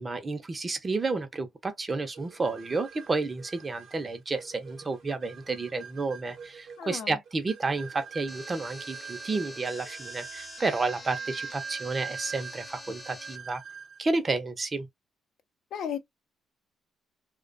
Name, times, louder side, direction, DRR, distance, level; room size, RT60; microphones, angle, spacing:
voice 1, 0.0-13.6 14.0-14.9, right 3 dB, 30° right, 0.6 m, -31 dB
sound 1, 2.1-14.1, right 6 dB, 65° right, 0.8 m, -43 dB
voice 2, 6.8-7.2 15.7-16.0, left 8 dB, 70° left, 0.6 m, -34 dB
sound 2, 8.3-13.4, left 3 dB, 30° left, 0.8 m, -46 dB
2.3 x 2.2 x 2.4 m
cardioid pair, 90°, 0 cm